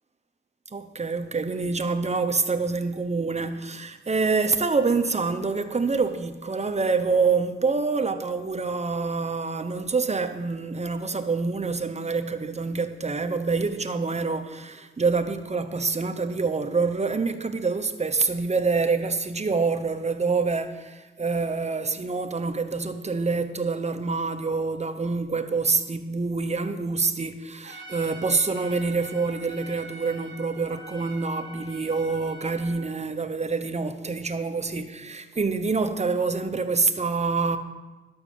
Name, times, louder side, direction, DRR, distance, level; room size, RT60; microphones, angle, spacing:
voice 1, 0.7-37.6, right 4 dB, 30° right, 0.8 m, -26 dB
Trumpet, 27.6-32.9, right 2 dB, 65° right, 1.4 m, -44 dB
11.5 x 6.2 x 6.9 m
wide cardioid pair, 95°, 21 cm